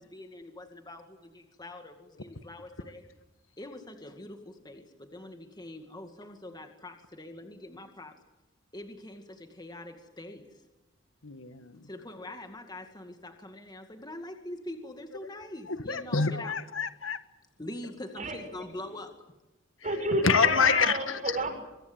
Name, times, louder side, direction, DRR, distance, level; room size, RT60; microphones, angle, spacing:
voice 1, 0.0-3.0 3.6-8.2 8.7-10.6 11.8-16.6 17.6-19.3, left 1 dB, 20° left, 5 dB, 2.1 m, -44 dB
voice 2, 11.2-11.8 15.7-17.2 20.2-21.4, left 5 dB, 85° left, 10 dB, 1.7 m, -27 dB
voice 3, 19.8-21.5, right 2 dB, 40° right, 5 dB, 7.3 m, -30 dB
26.0 x 23.0 x 8.0 m, 1.1 s
head